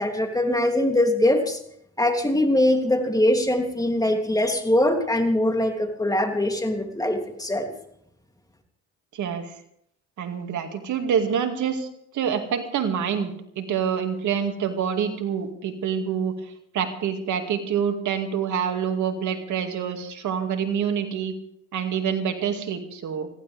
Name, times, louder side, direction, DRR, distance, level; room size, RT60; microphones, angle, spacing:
voice 1, 0.0-1.6 2.0-7.7, left 1 dB, 10° left, 4 dB, 3.1 m, -22 dB
voice 2, 9.1-9.5 10.2-11.9 12.1-16.3 16.7-21.3 21.7-23.3, right 7 dB, 65° right, 6 dB, 2.4 m, -26 dB
20.5 x 15.5 x 3.5 m, 0.70 s
supercardioid pair, 60°, 32 cm